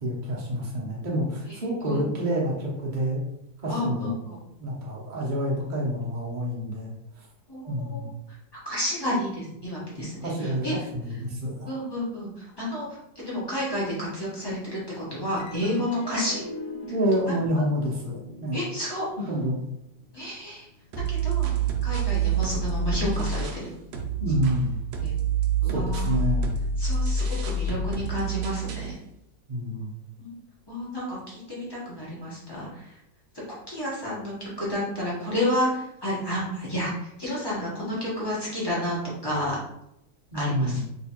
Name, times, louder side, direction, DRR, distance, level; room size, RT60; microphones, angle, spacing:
voice 1, 0.0-3.2 3.6-4.1 4.6-6.9 7.7-8.1 10.2-10.6 10.9-11.7 16.8-18.6 19.3-19.6 24.2-24.8 25.7-26.5 29.5-29.9 40.3-40.8, equal, 60° right, -4 dB, 0.5 m, -28 dB
voice 2, 3.7-4.1 7.5-8.1 8.6-10.7 11.7-12.9 13.1-16.4 18.5-19.0 20.1-20.7 21.1-21.5 21.8-23.7 25.0-25.1 25.6-26.1 26.8-28.9 30.2-30.3 30.7-32.9 33.7-39.0 39.2-39.6 40.3-40.8, left 1 dB, 20° left, -7 dB, 0.6 m, -30 dB
sound 1, 15.4-22.1, left 1 dB, 70° left, 1.0 m, -43 dB
sound 2, 20.9-23.7 23.9-28.9, right 4 dB, 75° right, 0.9 m, -27 dB
3.1 x 3.0 x 2.9 m, 0.80 s
omnidirectional pair, 2.1 m